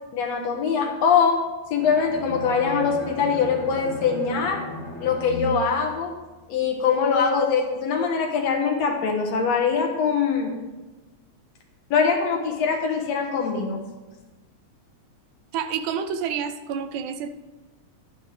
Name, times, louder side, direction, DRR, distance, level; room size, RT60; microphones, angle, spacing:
voice 1, 0.1-1.4 1.7-4.6 5.0-6.1 6.5-10.6 11.9-13.8, left 6 dB, 65° left, 1 dB, 2.3 m, -23 dB
Bowed string instrument, 1.8-6.8, left 1 dB, 10° left, 2.2 m, -36 dB
voice 2, 15.5-17.3, right 7 dB, 80° right, 9 dB, 1.9 m, -28 dB
11.5 x 9.6 x 3.4 m, 1.2 s
omnidirectional pair, 3.4 m